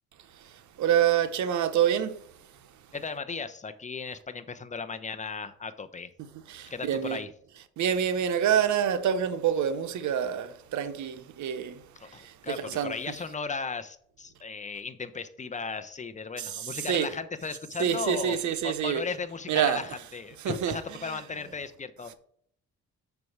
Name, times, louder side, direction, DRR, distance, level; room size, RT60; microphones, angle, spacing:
voice 1, 0.8-2.2 6.5-7.2 7.8-13.0 16.4-17.1 17.8-19.0 19.5-19.8 20.4-20.8 21.0-21.2, right 9 dB, 70° right, 1.0 m, -27 dB
voice 2, 2.9-6.1 6.7-7.3 12.0-22.1, left 5 dB, 25° left, 0.9 m, -36 dB
6.8 x 4.8 x 6.5 m
cardioid pair, 90°, 30 cm